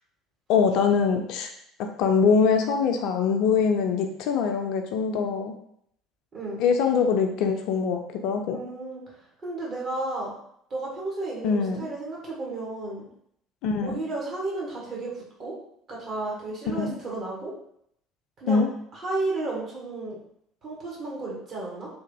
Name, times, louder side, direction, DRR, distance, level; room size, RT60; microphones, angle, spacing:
voice 1, 0.5-1.5 2.0-5.5 6.6-8.6 11.4-11.9 13.6-14.0 16.8-17.0 18.5-18.7, left 5 dB, 55° left, 4 dB, 0.3 m, -23 dB
voice 2, 6.3-6.6 8.5-9.0 9.4-10.3 10.7-13.0 13.8-15.5 15.9-17.5 18.4-18.7 18.9-20.2 20.6-21.9, right 2 dB, 40° right, -4 dB, 1.2 m, -33 dB
3.0 x 2.4 x 2.6 m, 0.70 s
figure-of-eight pair, 60°, 0 cm